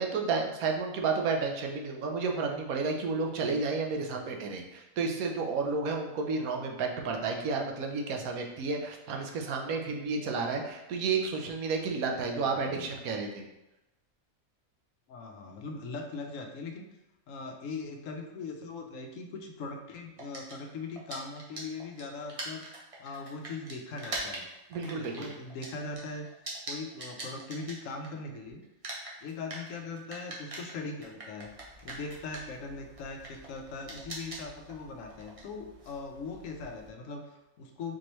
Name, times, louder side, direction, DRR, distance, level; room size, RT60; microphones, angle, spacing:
voice 1, 0.0-13.5 24.7-25.3, right 4 dB, 90° right, 2 dB, 1.1 m, -31 dB
voice 2, 12.3-12.9 15.1-16.9 17.3-22.6 23.0-24.5 24.8-26.3 26.7-28.6 29.2-31.5 31.8-38.0, left 3 dB, 70° left, 3 dB, 0.9 m, -40 dB
sound 1, 20.2-28.4 28.6-36.9, right 2 dB, 35° right, 0.6 m, -43 dB
4.4 x 3.0 x 3.0 m, 0.96 s
omnidirectional pair, 1.4 m